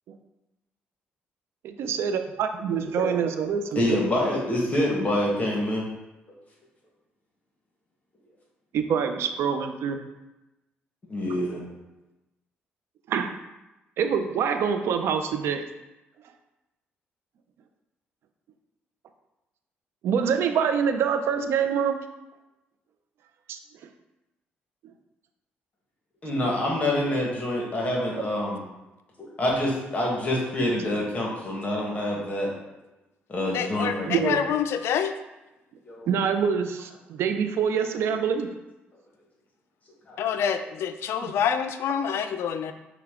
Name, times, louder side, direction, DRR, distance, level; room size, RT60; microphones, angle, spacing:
voice 1, 1.6-3.8 8.7-10.1 13.1-13.3 14.0-15.6 20.0-22.0 23.5-23.6 28.2-28.3 34.1-34.4 36.1-38.6 41.2-41.3, right 7 dB, 75° right, 7 dB, 0.4 m, -25 dB
voice 2, 3.7-5.8 11.1-11.6 26.2-28.6 29.2-32.5 33.3-34.4 35.8-36.1 40.1-40.2, left 1 dB, 35° left, -2 dB, 1.2 m, -26 dB
voice 3, 33.5-35.1 40.2-42.7, left 8 dB, 70° left, 9 dB, 0.3 m, -27 dB
5.6 x 2.2 x 3.5 m, 1.0 s
cardioid pair, 85°, 4 cm